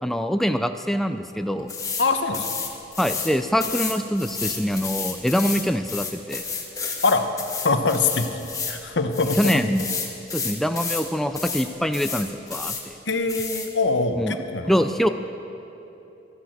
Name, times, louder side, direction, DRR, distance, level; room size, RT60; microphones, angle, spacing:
voice 1, 0.0-1.7 3.0-6.4 9.4-9.9 10.3-13.0 14.2-14.4 14.7-15.1, equal, ahead, 7 dB, 0.4 m, -24 dB
sound 1, 1.7-2.1 2.3-3.3 3.6-8.8 9.1-11.1 11.3-11.7 11.9-12.8 13.3-13.7, left 5 dB, 20° left, 1.5 m, -31 dB
voice 2, 2.0-2.5 7.0-7.3 7.6-9.6 13.1-14.7, left 3 dB, 75° left, 7 dB, 1.0 m, -23 dB
13.0 x 10.5 x 7.9 m, 3.0 s
head